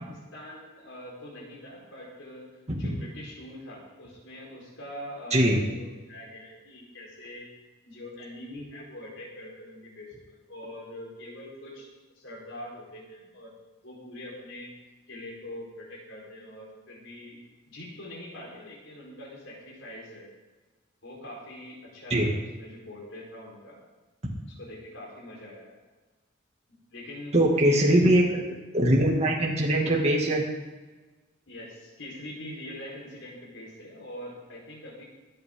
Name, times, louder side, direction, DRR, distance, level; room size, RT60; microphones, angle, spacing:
voice 1, 0.0-2.5 2.7-7.5 7.8-11.9 12.1-13.5 13.8-14.7 15.1-17.4 17.7-20.3 21.0-23.8 24.6-25.8 26.9-28.0 31.5-35.0, left 1 dB, 85° left, -5 dB, 4.5 m, -43 dB
voice 2, 27.3-30.4, right 1 dB, 35° right, -2 dB, 2.2 m, -22 dB
24.0 x 8.8 x 3.8 m, 1.2 s
head